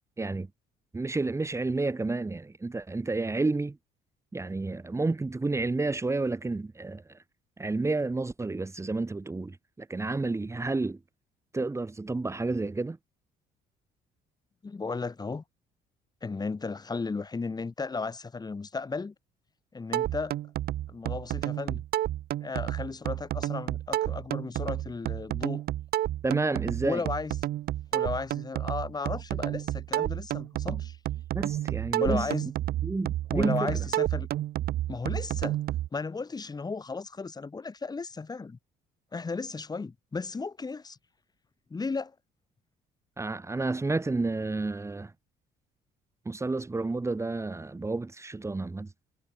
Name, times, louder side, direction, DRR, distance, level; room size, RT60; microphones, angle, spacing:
voice 1, 0.2-0.5 0.9-3.8 4.3-7.0 7.6-11.0 11.5-13.0 26.2-27.0 31.3-32.3 32.8-33.7 43.2-45.1 46.3-48.9, right 3 dB, 15° right, 3.6 m, -30 dB
voice 2, 14.6-15.4 16.2-19.1 19.7-20.4 20.9-21.8 22.4-25.6 26.8-27.4 27.9-31.0 32.0-32.5 33.3-34.3 34.9-35.6 35.9-38.6 39.1-41.0 41.7-42.1, left 4 dB, 25° left, 4.7 m, -34 dB
sound 1, 19.9-35.9, right 14 dB, 65° right, 1.3 m, -31 dB
cardioid pair, 110°, 17 cm